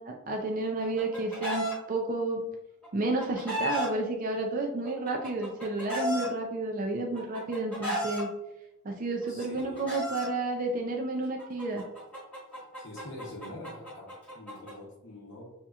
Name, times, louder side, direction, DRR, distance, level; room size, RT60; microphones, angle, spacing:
voice 1, 0.0-2.4 2.9-8.3 8.8-11.8, right 2 dB, 40° right, 1 dB, 0.4 m, -31 dB
Chicken rooster, 0.6-1.7 2.8-3.9 4.8-6.3 7.1-8.2 9.2-10.3 11.4-14.7, equal, 5° left, 1.1 m, -34 dB
voice 2, 9.3-9.9 12.8-15.5, left 1 dB, 60° left, -4 dB, 0.8 m, -45 dB
6.2 x 2.8 x 2.4 m, 0.95 s
head